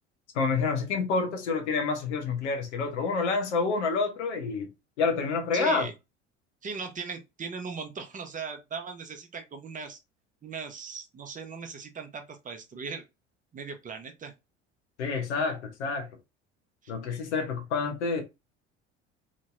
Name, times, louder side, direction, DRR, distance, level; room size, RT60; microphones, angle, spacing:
voice 1, 0.3-4.7 5.0-5.9 15.0-16.1 16.9-18.2, left 4 dB, 70° left, 0.9 m, -28 dB
voice 2, 5.5-5.9 6.6-10.0 10.4-13.0 13.5-14.3 16.8-16.9, right 5 dB, 20° right, 0.8 m, -38 dB
3.0 x 2.7 x 2.4 m
figure-of-eight pair, 60°, 35 cm